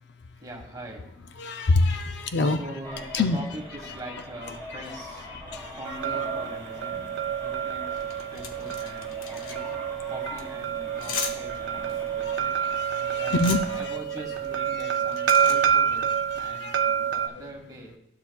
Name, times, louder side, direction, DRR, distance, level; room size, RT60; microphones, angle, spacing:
voice 1, 0.4-1.1 2.4-5.3 5.8-7.1 7.4-8.0 8.3-9.7 10.1-12.5 13.2-13.4 13.7-16.1 16.4-18.0, right 1 dB, 20° right, 0 dB, 1.4 m, -42 dB
voice 2, 1.4-2.6 3.1-3.4 4.1-4.2 5.3-6.0 12.0-14.0 14.7-14.8 15.1-15.6 16.5-17.2, left 3 dB, 55° left, 7 dB, 0.4 m, -28 dB
sound 1, 2.8-13.9, equal, 15° left, 2.2 m, -43 dB
sound 2, 5.8-17.3, right 8 dB, 65° right, 0.4 m, -28 dB
sound 3, 7.1-16.4, left 5 dB, 80° left, 0.8 m, -39 dB
12.5 x 6.7 x 2.3 m, 0.80 s
head